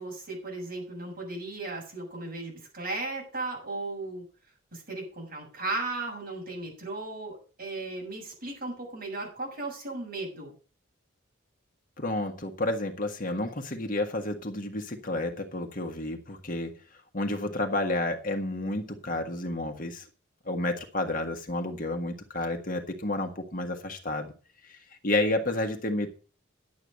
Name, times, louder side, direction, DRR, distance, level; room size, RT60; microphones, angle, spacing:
voice 1, 0.0-4.2 4.7-10.5, right 2 dB, 45° right, -1 dB, 7.2 m, -36 dB
voice 2, 12.0-16.7 17.1-20.1 20.4-24.3 24.7-24.8 25.0-26.1, left 2 dB, 40° left, 5 dB, 1.5 m, -30 dB
11.0 x 7.9 x 6.6 m, 0.36 s
head